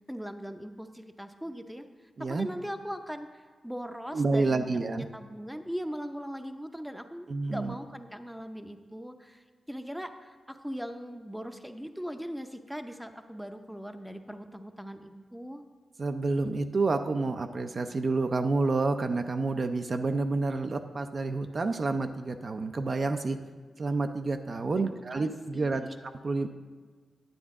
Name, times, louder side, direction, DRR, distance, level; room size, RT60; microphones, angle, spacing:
voice 1, 0.1-1.8 2.2-15.6 24.8-25.9, equal, ahead, 7 dB, 0.6 m, -40 dB
voice 2, 4.1-5.1 7.3-7.7 16.0-23.4 23.8-26.5, right 3 dB, 45° right, 7 dB, 0.4 m, -29 dB
10.0 x 8.5 x 3.6 m, 1.5 s
cardioid pair, 85°, 0 cm